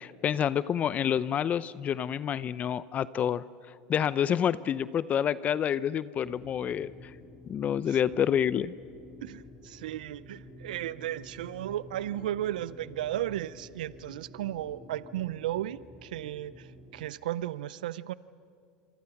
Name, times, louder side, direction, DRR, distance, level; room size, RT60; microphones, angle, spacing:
voice 1, 0.0-7.1 7.5-8.7, left 9 dB, 35° left, 17 dB, 0.6 m, -28 dB
sound 1, 6.2-17.1, equal, 15° left, 6.7 m, -51 dB
voice 2, 9.2-18.1, right 13 dB, 85° right, 18 dB, 0.5 m, -35 dB
27.0 x 24.5 x 6.0 m, 2.4 s
supercardioid pair, 105°, 4 cm